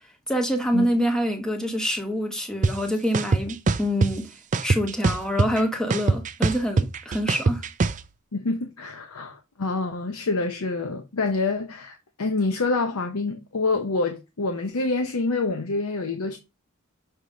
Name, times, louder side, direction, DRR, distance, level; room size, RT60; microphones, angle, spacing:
voice 1, 0.3-4.3 4.6-7.6, equal, 5° left, 1.1 m, -26 dB
sound 1, 2.6-2.7 3.1-4.1 4.5-5.6 5.9-8.0, right 3 dB, 35° right, 0.4 m, -21 dB
voice 2, 8.3-16.4, left 3 dB, 75° left, 0.8 m, -27 dB
6.6 x 3.0 x 4.9 m
head